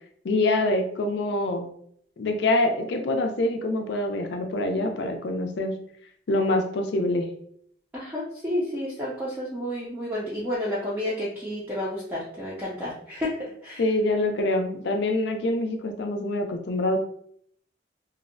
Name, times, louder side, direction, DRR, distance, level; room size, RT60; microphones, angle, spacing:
voice 1, 0.2-1.7 2.2-5.8 6.3-7.3 13.8-17.0, left 2 dB, 70° left, 5 dB, 0.4 m, -25 dB
voice 2, 7.9-13.4 13.6-13.8, left 1 dB, 10° right, -7 dB, 0.4 m, -30 dB
2.6 x 2.0 x 2.5 m, 0.66 s
head